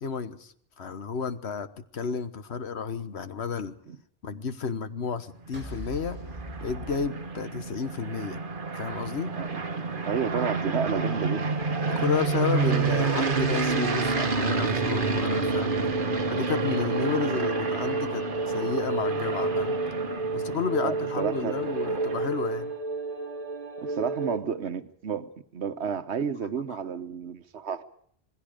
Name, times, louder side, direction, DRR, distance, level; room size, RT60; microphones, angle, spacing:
voice 1, 0.0-3.7 4.2-6.2 6.6-8.4 8.7-9.3 10.3-10.4 11.9-15.8 16.3-19.8 20.3-22.7 26.7-26.8, left 6 dB, 80° left, 11 dB, 1.4 m, -32 dB
sound 1, 5.5-7.9, right 1 dB, 10° right, 7.3 m, -41 dB
sound 2, 5.5-22.6, right 4 dB, 55° right, 1.4 m, -29 dB
voice 2, 10.1-11.5 20.8-21.5 23.8-27.8, right 7 dB, 85° right, 11 dB, 1.3 m, -31 dB
sound 3, 10.5-24.4, right 3 dB, 35° right, 2.1 m, -32 dB
27.0 x 20.0 x 5.1 m, 0.64 s
omnidirectional pair, 1.1 m